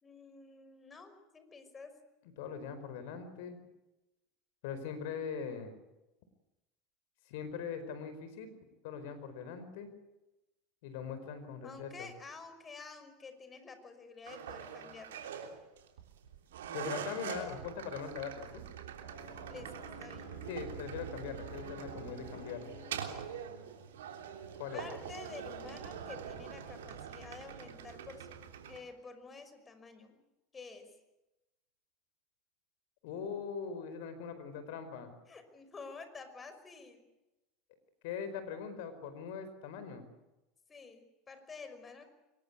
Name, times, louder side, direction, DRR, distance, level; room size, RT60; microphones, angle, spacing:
voice 1, 0.0-2.0 11.6-15.2 19.5-20.3 24.7-30.2 30.5-31.0 35.3-37.0 40.7-42.1, left 4 dB, 25° left, 10 dB, 5.6 m, -50 dB
voice 2, 2.4-3.6 4.6-5.7 7.3-8.5 8.8-9.9 10.8-12.1 16.7-18.6 20.5-22.7 24.6-24.8 33.0-35.1 38.0-40.0, left 6 dB, 70° left, 11 dB, 4.8 m, -41 dB
sound 1, 14.3-28.8, right 7 dB, 80° right, 3.3 m, -44 dB
Brass instrument, 19.0-23.3, left 13 dB, 50° left, 2.1 m, -55 dB
24.0 x 21.5 x 8.5 m, 0.98 s
hypercardioid pair, 85°, 0 cm